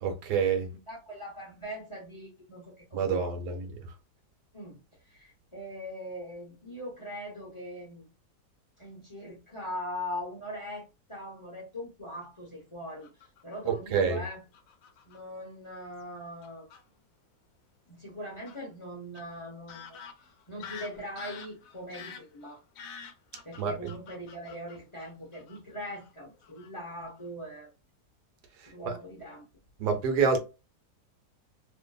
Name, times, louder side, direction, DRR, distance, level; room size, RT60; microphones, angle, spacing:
voice 1, 0.0-0.7 2.9-3.7 13.6-14.2 23.6-23.9 28.6-28.9 29.8-30.4, right 6 dB, 80° right, 1.2 m, -27 dB
voice 2, 0.9-3.6 4.5-4.8 5.0-8.0 8.8-13.1 13.4-14.4 15.1-16.7 17.9-20.0 20.5-22.6 23.4-27.7 28.7-29.4, equal, 40° left, 0.4 m, -41 dB
Fowl / Bird vocalization bird call bird song, 13.0-13.7 14.5-15.2 16.0-16.1 16.4-16.8 18.5-18.6 19.1-19.2 19.7-25.6 25.9-26.1 26.4-26.7 27.0-27.3, left 7 dB, 70° left, 0.8 m, -47 dB
2.6 x 2.5 x 2.2 m
omnidirectional pair, 1.8 m